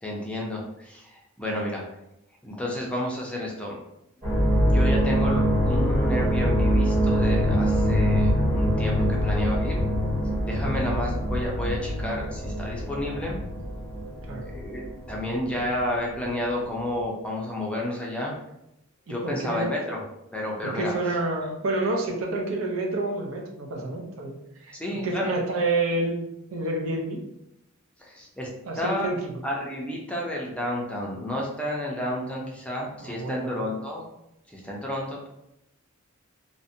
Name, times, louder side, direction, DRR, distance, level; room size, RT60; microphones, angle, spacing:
voice 1, 0.0-1.9 2.4-3.8 4.6-9.8 10.4-13.4 14.4-18.4 19.1-20.0 20.3-20.9 24.7-25.4 28.0-28.5 28.8-29.1 29.4-34.1 34.5-35.3, left 1 dB, 5° left, -3 dB, 0.4 m, -31 dB
sound 1, 4.2-16.3 16.6-17.1, equal, 30° right, 1.4 m, -24 dB
voice 2, 19.1-19.7 20.6-24.4 24.6-24.7 25.0-26.2 26.5-27.2 28.7-29.2 33.0-33.7, right 2 dB, 70° right, 0 dB, 0.5 m, -28 dB
2.5 x 2.1 x 2.6 m, 0.84 s
head